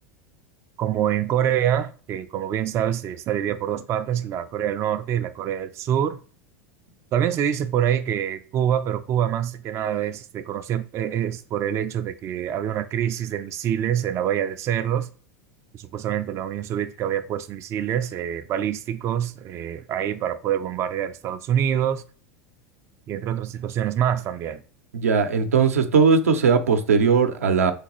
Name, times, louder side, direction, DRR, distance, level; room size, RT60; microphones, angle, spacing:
voice 1, 0.8-6.2 7.1-15.1 15.7-22.0 23.1-24.6, right 10 dB, 35° right, 0.3 m, -25 dB
voice 2, 24.9-27.7, right 5 dB, 80° right, 0.6 m, -19 dB
3.8 x 3.3 x 3.0 m
hypercardioid pair, 85°, 8 cm